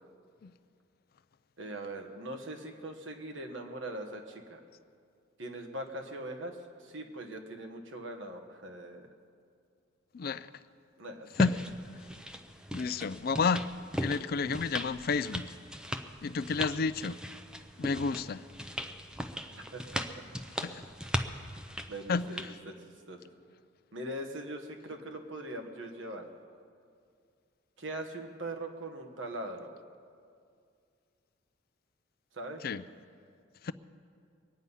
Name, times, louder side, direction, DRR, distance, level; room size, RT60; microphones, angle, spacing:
voice 1, 1.6-4.6 5.4-6.6 6.8-9.1 11.0-11.3 19.5-20.2 21.9-22.7 23.1-23.2 23.9-26.2 27.8-29.7 32.3-32.6, right 1 dB, 65° right, 1.4 m, -41 dB
voice 2, 10.1-10.5 11.4-11.6 12.7-13.7 14.0-15.5 16.2-17.2 17.8-18.4 20.6-20.8 22.1-22.5 32.6-32.8 33.6-33.7, left 4 dB, 45° left, 0.4 m, -31 dB
sound 1, 11.3-22.5, equal, 5° right, 0.5 m, -39 dB
22.5 x 9.7 x 5.6 m
head